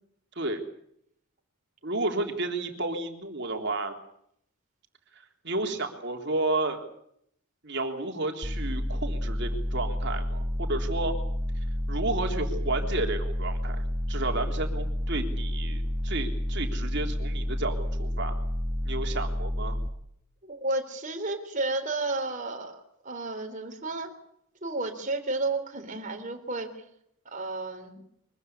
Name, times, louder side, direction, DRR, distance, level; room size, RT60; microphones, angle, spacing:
voice 1, 1.8-3.9 5.4-6.9 7.6-11.1 11.9-18.4 18.9-19.8, right 2 dB, 50° right, 4 dB, 3.6 m, -32 dB
sound 1, 8.4-19.9, equal, 10° right, 2.1 m, -30 dB
voice 2, 20.4-24.1 24.6-26.8 27.3-28.0, right 2 dB, 35° right, 5 dB, 3.6 m, -32 dB
24.0 x 15.0 x 9.9 m, 0.71 s
head